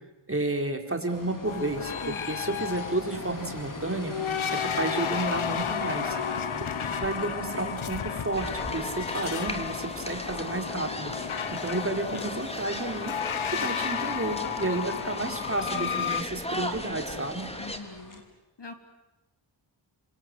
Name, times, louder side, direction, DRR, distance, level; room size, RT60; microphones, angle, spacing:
voice 1, 0.3-4.2 4.5-6.2 6.9-11.1 11.5-13.2 13.6-17.5, right 2 dB, 25° right, 4 dB, 4.3 m, -31 dB
sound 1, 1.1-18.2, left 2 dB, 40° left, 5.1 m, -44 dB
sound 2, 1.4-16.2, left 7 dB, 85° left, 1.4 m, -33 dB
voice 2, 6.0-6.4 17.6-18.2 18.6-18.7, left 3 dB, 60° left, 6 dB, 3.5 m, -42 dB
sound 3, 8.3-17.8, left 1 dB, 10° left, 3.5 m, -37 dB
29.0 x 26.0 x 7.9 m, 1.0 s
cardioid pair, 55°, 47 cm